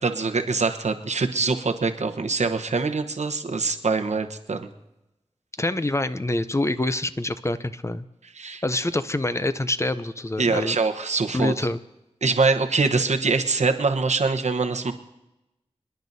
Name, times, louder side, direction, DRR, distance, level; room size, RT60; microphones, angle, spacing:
voice 1, 0.0-4.7 8.3-8.6 10.4-11.5 12.2-14.9, right 4 dB, 80° right, 6 dB, 1.0 m, -24 dB
voice 2, 5.6-8.0 8.6-10.8 11.3-11.8, left 2 dB, 25° left, 12 dB, 0.5 m, -26 dB
28.0 x 10.5 x 2.7 m, 0.94 s
wide cardioid pair, 70°, 12 cm